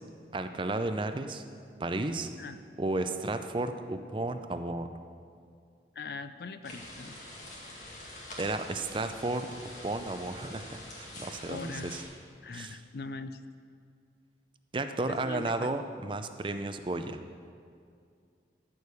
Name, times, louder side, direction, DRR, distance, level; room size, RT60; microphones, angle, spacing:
voice 1, 0.3-1.4 1.8-2.3 2.8-4.9 8.4-12.0 12.5-12.8 14.7-17.2, right 2 dB, 25° right, 8 dB, 0.4 m, -33 dB
voice 2, 6.0-7.1 11.5-12.0 12.4-13.4 15.1-15.8, left 4 dB, 60° left, 11 dB, 0.4 m, -41 dB
sound 1, 6.6-12.0, left 1 dB, 40° left, 1.9 m, -45 dB
14.0 x 4.9 x 6.9 m, 2.3 s
head